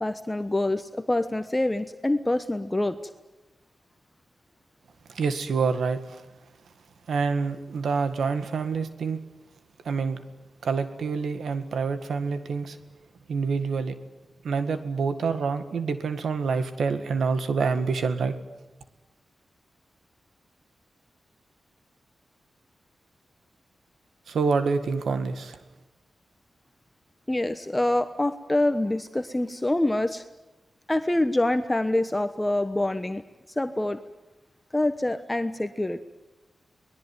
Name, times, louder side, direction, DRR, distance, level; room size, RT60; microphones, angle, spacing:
voice 1, 0.0-3.0 27.3-30.3 30.9-33.2 33.6-34.0 34.7-36.0, left 1 dB, 15° left, 9 dB, 1.1 m, -25 dB
voice 2, 5.1-6.3 7.1-9.2 9.8-10.2 10.6-12.8 13.3-14.0 14.4-18.4 24.3-25.6, right 5 dB, 85° right, 9 dB, 1.8 m, -27 dB
24.0 x 20.5 x 9.7 m, 1.1 s
cardioid pair, 80°, 0 cm